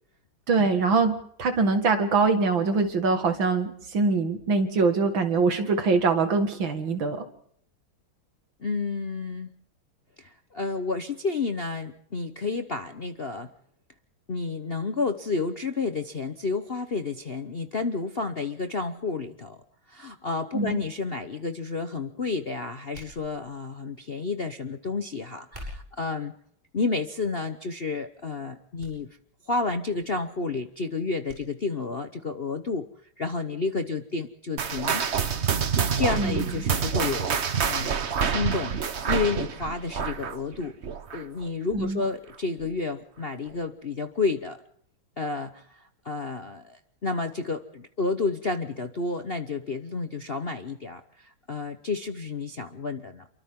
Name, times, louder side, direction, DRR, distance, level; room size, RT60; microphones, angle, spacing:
voice 1, 0.5-7.3 20.5-20.8 36.2-36.4 41.7-42.0, right 4 dB, 65° right, 7 dB, 2.7 m, -23 dB
voice 2, 8.6-9.5 10.2-13.5 14.3-19.6 19.9-26.3 26.7-29.1 29.5-32.9 33.2-35.0 36.0-38.7 39.1-40.8 41.1-44.6 45.2-53.3, left 3 dB, 40° left, 7 dB, 0.9 m, -31 dB
sound 1, 22.9-23.7 25.4-26.1 26.9-27.2 27.7-27.8 28.8-29.0 29.3-29.4 31.3-31.4 31.8-31.9, left 1 dB, 20° right, 7.3 m, -44 dB
sound 2, 34.6-41.4 41.7-42.0 42.6-42.7 43.5-43.6, right 6 dB, 45° right, 1.0 m, -27 dB
29.0 x 23.5 x 3.8 m, 0.67 s
omnidirectional pair, 2.3 m